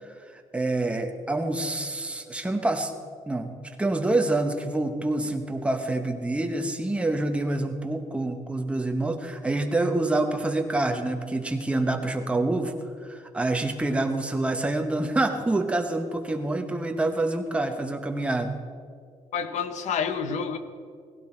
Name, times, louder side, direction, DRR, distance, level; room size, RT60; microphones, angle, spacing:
voice 1, 0.5-2.9 3.3-3.5 3.8-12.7 13.0-18.6, right 2 dB, 10° right, 5 dB, 1.0 m, -27 dB
voice 2, 19.3-20.6, left 6 dB, 70° left, 10 dB, 1.0 m, -28 dB
18.0 x 16.5 x 4.4 m, 2.2 s
cardioid pair, 160°, 13 cm